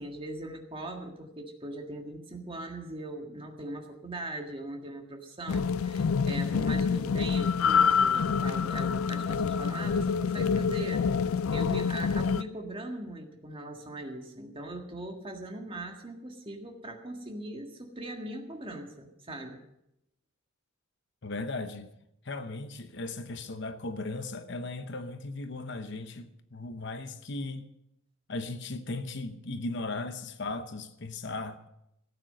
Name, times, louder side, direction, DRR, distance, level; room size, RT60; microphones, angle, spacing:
voice 1, 0.0-11.0 11.5-19.6, right 1 dB, 25° right, 1.7 m, -40 dB
sound 1, 5.5-12.4, left 6 dB, 80° left, 0.4 m, -27 dB
voice 2, 21.2-21.9 22.2-27.7 28.3-31.7, left 2 dB, 55° left, 0.9 m, -37 dB
17.0 x 9.0 x 6.6 m
head